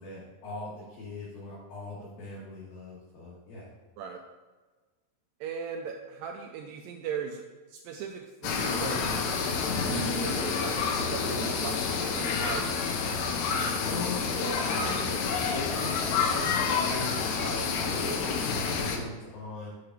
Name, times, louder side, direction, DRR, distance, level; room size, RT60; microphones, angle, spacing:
voice 1, 0.0-3.7 13.8-19.7, left 2 dB, 70° left, -7 dB, 3.3 m, -39 dB
voice 2, 5.4-12.8, right 7 dB, 85° right, 3 dB, 1.9 m, -38 dB
sound 1, 8.4-19.0, left 5 dB, 90° left, 2.9 m, -29 dB
6.9 x 4.9 x 5.9 m, 1.3 s
omnidirectional pair, 4.6 m